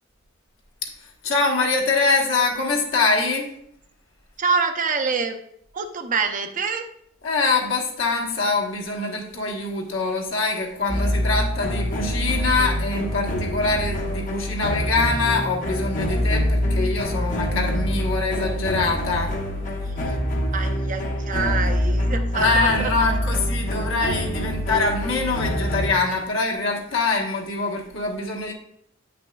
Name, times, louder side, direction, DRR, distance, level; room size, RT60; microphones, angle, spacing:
voice 1, 0.8-3.5 7.2-19.3 22.3-28.5, left 3 dB, 70° left, 0 dB, 1.3 m, -24 dB
voice 2, 4.4-5.4 5.7-6.9 19.8-20.2 20.5-22.9, right 4 dB, 40° right, 6 dB, 0.6 m, -26 dB
sound 1, 10.9-25.9, equal, 40° left, 0.9 m, -25 dB
8.6 x 5.8 x 2.3 m, 0.71 s
head